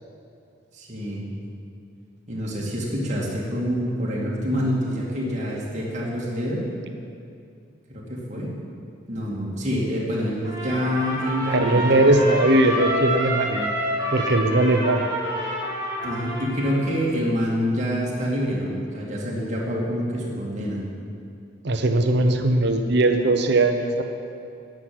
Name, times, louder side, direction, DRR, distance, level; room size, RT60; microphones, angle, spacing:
voice 1, 0.7-1.2 2.3-6.7 7.9-8.5 9.1-12.1 16.0-20.8, equal, 35° right, -4 dB, 2.6 m, -26 dB
Trumpet, 10.4-17.0, right 1 dB, 15° right, 4.0 m, -28 dB
voice 2, 11.5-13.6 14.1-15.0 21.6-24.0, right 2 dB, 60° right, 6 dB, 0.9 m, -19 dB
10.5 x 7.7 x 9.6 m, 2.5 s
head